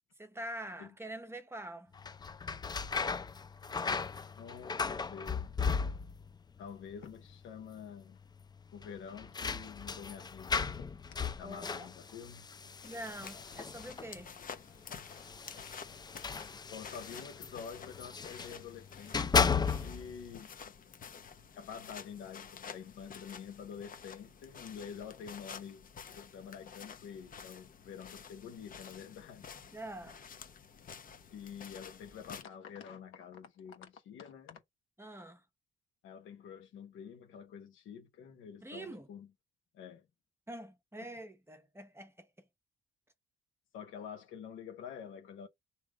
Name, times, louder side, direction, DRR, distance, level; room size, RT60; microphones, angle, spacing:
voice 1, 0.2-1.9 11.4-11.9 12.8-14.4 29.7-30.2 35.0-35.4 38.6-39.1 40.5-42.5, right 1 dB, 10° right, 0.8 m, -45 dB
sound 1, 2.0-6.4 6.6-7.3 7.6-7.7 8.8-14.2 15.1-18.6 19.0-20.2, left 5 dB, 20° left, 0.4 m, -35 dB
voice 2, 4.4-5.5 6.6-8.2 8.7-10.9 11.3-12.7 16.7-20.7 21.5-29.5 31.3-34.6 36.0-39.3 39.7-40.1 43.7-45.5, left 7 dB, 85° left, 1.2 m, -48 dB
sound 2, 12.8-32.4, left 6 dB, 45° left, 0.7 m, -50 dB
3.5 x 3.0 x 4.8 m
cardioid pair, 90°, 20 cm